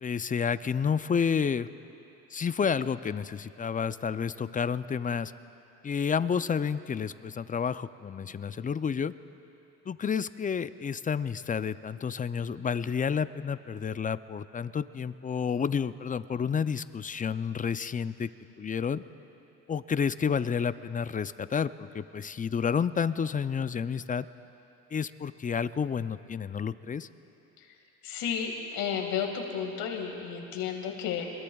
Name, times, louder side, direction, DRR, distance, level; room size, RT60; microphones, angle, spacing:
voice 1, 0.0-1.7 2.3-5.3 5.8-9.1 9.9-18.3 18.6-19.0 19.7-24.3 24.9-27.1, left 6 dB, 25° left, 14 dB, 0.5 m, -30 dB
voice 2, 28.0-31.2, left 7 dB, 85° left, 2 dB, 2.1 m, -32 dB
27.0 x 21.5 x 2.4 m, 2.9 s
supercardioid pair, 75°, 35 cm